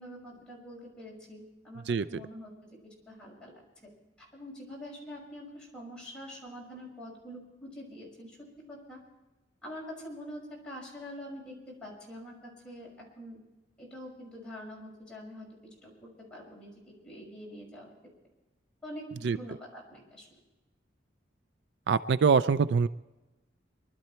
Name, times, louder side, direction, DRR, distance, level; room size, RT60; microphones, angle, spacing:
voice 1, 0.0-1.8 2.1-2.5 2.8-3.9 4.2-8.4 8.7-9.0 9.6-12.9 13.2-13.4 13.8-15.5 15.8-17.9 18.8-20.3, equal, 5° left, -4 dB, 5.8 m, -45 dB
voice 2, 21.9-22.9, right 5 dB, 65° right, 14 dB, 0.4 m, -24 dB
23.5 x 12.5 x 4.4 m, 1.1 s
head